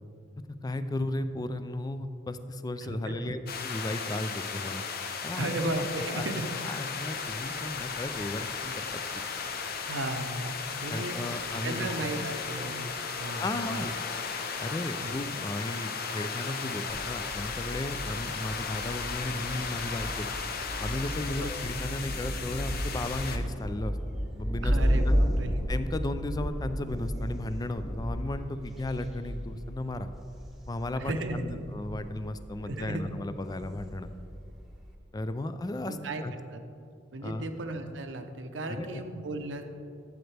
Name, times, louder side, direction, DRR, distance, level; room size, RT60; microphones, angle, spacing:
voice 1, 0.6-4.8 5.2-5.5 6.0-6.3 6.6-9.2 10.9-11.9 13.4-13.9 14.6-20.3 20.8-24.8 25.0-25.1 25.7-30.1 30.7-34.1 35.1-36.3 37.2-37.5 38.7-39.0, left 1 dB, 20° left, 10 dB, 0.4 m, -35 dB
voice 2, 2.8-3.3 5.4-6.4 7.8-7.9 9.9-11.2 11.6-13.9 15.0-15.1 21.4-21.5 24.6-25.6 31.0-31.6 32.7-33.0 35.9-36.2 36.5-36.6 37.1-39.6, right 2 dB, 70° right, 6 dB, 0.8 m, -35 dB
sound 1, 3.5-23.4, left 5 dB, 55° left, 0.7 m, -36 dB
sound 2, 7.0-15.2, left 1 dB, 80° left, 1.5 m, -52 dB
Thunder, 16.9-34.9, equal, ahead, 0.9 m, -33 dB
12.0 x 8.0 x 3.3 m, 2.5 s
head